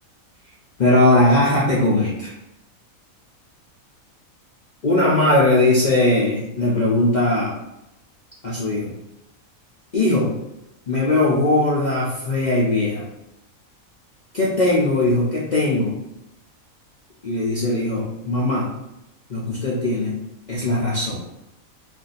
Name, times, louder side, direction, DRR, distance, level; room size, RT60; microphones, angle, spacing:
voice 1, 0.8-2.3 4.8-7.5 8.4-8.9 9.9-10.3 10.9-13.1 14.3-16.0 17.2-18.7 19.3-20.2 20.5-21.2, left 2 dB, 55° left, -6 dB, 0.5 m, -19 dB
2.6 x 2.5 x 4.0 m, 0.89 s
omnidirectional pair, 1.5 m